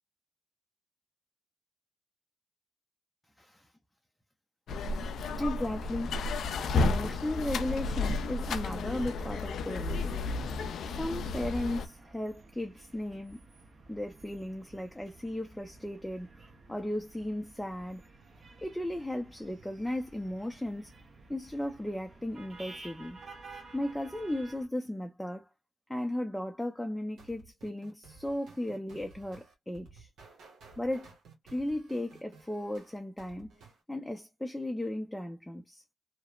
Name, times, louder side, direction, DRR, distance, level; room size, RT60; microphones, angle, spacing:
voice 1, 3.4-3.7 5.4-6.1 6.7-10.3 10.9-13.4 13.9-16.3 16.7-18.0 18.6-20.9 21.3-23.2 23.7-25.5 25.9-30.1 30.8-31.1 31.5-33.5 33.9-35.8, left 1 dB, 10° left, 0.4 m, -35 dB
sound 1, 4.7-11.9, left 3 dB, 80° left, 0.3 m, -32 dB
sound 2, 7.6-24.7, right 3 dB, 55° right, 0.8 m, -53 dB
sound 3, 27.2-33.8, right 4 dB, 90° right, 0.9 m, -55 dB
2.9 x 2.0 x 2.2 m
cardioid pair, 70°, 0 cm